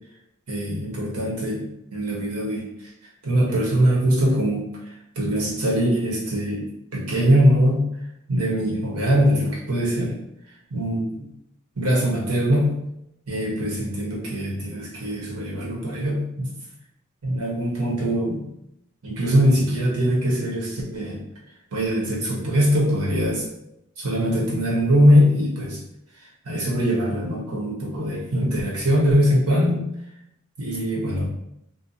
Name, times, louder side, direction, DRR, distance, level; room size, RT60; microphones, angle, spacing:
voice 1, 0.5-1.7 1.9-2.6 3.2-4.6 5.2-7.9 8.3-10.2 10.7-11.3 11.8-12.8 13.3-16.5 17.2-18.5 19.0-21.2 21.7-23.4 24.0-25.8 26.4-29.8 30.6-31.3, equal, 80° right, -4 dB, 0.9 m, -22 dB
2.7 x 2.2 x 2.6 m, 0.79 s
head